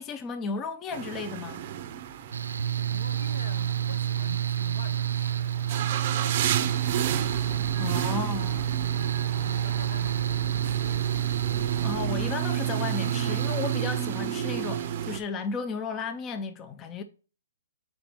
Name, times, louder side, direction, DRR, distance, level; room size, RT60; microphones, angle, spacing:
voice 1, 0.0-1.6 7.8-8.6 11.8-17.0, left 5 dB, 15° left, 0.4 m, -34 dB
sound 1, 0.9-15.2, right 10 dB, 35° right, 0.5 m, -33 dB
Mechanical fan, 2.3-14.9, right 10 dB, 85° right, 0.3 m, -29 dB
voice 2, 2.9-7.4 7.8-11.5, left 4 dB, 70° left, 0.9 m, -45 dB
sound 2, 7.0-12.4, left 3 dB, 40° left, 1.3 m, -45 dB
5.6 x 4.3 x 4.3 m
hypercardioid pair, 165°, 0 cm